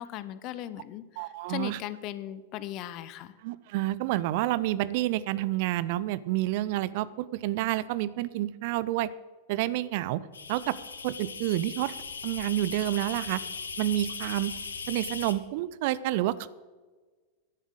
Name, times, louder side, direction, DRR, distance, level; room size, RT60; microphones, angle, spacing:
voice 1, 0.0-3.3, left 13 dB, 40° left, 15 dB, 0.7 m, -38 dB
voice 2, 1.2-1.8 3.4-9.1 9.5-10.2 10.5-10.8 11.0-11.9 12.2-13.4 13.8-14.5 14.9-16.5, right 15 dB, 50° right, 17 dB, 0.5 m, -29 dB
sound 1, 10.3-15.3, left 5 dB, 75° left, 1.0 m, -38 dB
11.0 x 7.3 x 7.9 m, 1.3 s
figure-of-eight pair, 90°, 0 cm